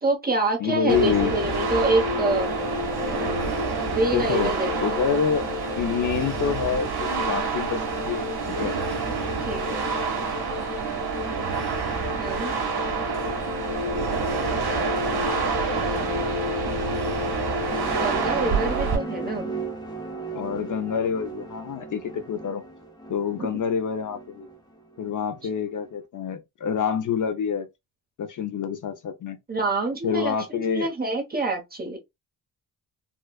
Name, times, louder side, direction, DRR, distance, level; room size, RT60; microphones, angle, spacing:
voice 1, 0.0-2.5 3.9-4.8 9.4-9.9 12.2-12.5 18.0-19.5 23.4-23.5 29.5-32.0, right 2 dB, 25° right, 1.1 m, -26 dB
voice 2, 0.6-1.3 4.1-4.5 4.8-5.4 5.8-8.3 8.6-8.7 20.3-22.6 23.1-24.5 25.0-27.7 28.2-29.4 30.0-30.9, left 7 dB, 50° left, 0.6 m, -27 dB
sound 1, 0.9-19.0, right 3 dB, 70° right, 1.7 m, -27 dB
sound 2, 17.3-25.9, right 3 dB, 10° left, 0.8 m, -37 dB
4.3 x 2.4 x 2.3 m
cardioid pair, 130°, 39 cm